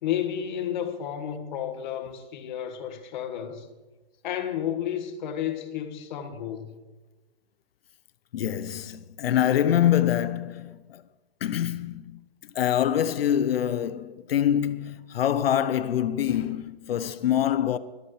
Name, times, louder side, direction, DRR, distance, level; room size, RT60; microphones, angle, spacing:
voice 1, 0.0-3.7 4.2-6.7, left 10 dB, 50° left, 1.7 m, -31 dB
voice 2, 8.3-11.0 11.4-12.2 12.5-17.8, left 10 dB, 75° left, 0.9 m, -25 dB
24.0 x 10.5 x 3.3 m
hypercardioid pair, 155°, 30 cm